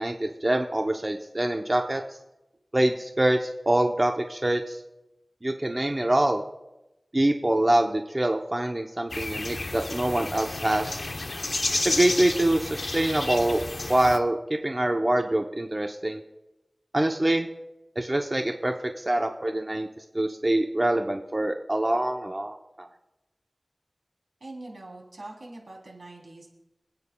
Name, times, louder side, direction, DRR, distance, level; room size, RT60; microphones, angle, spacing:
voice 1, 0.0-2.0 2.7-4.8 5.4-6.4 7.1-11.0 11.8-13.6 13.9-14.4 14.6-16.2 16.9-17.5 18.0-19.9 20.1-22.9, right 1 dB, 35° right, 3 dB, 0.7 m, -25 dB
sound 1, 9.1-14.2, left 2 dB, 65° left, 0.8 m, -31 dB
voice 2, 24.4-26.5, right 2 dB, 85° right, -1 dB, 3.2 m, -43 dB
26.0 x 9.1 x 2.3 m, 0.98 s
wide cardioid pair, 55°, 0 cm